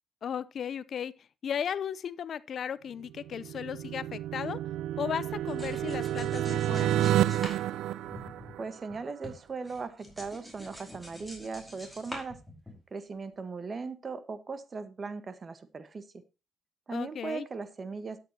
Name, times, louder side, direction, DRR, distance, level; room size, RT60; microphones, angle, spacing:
voice 1, 0.2-1.1 1.4-4.6 5.0-7.0 16.9-17.5, left 8 dB, 60° left, 0.7 m, -35 dB
sound 1, 3.1-9.0, right 12 dB, 85° right, 0.5 m, -30 dB
sound 2, 5.3-9.0 9.2-13.0, left 1 dB, ahead, 4.9 m, -46 dB
voice 2, 8.6-12.4 12.9-16.2 16.9-18.2, right 4 dB, 35° right, 1.4 m, -38 dB
12.5 x 9.5 x 2.9 m
cardioid pair, 90°, 0 cm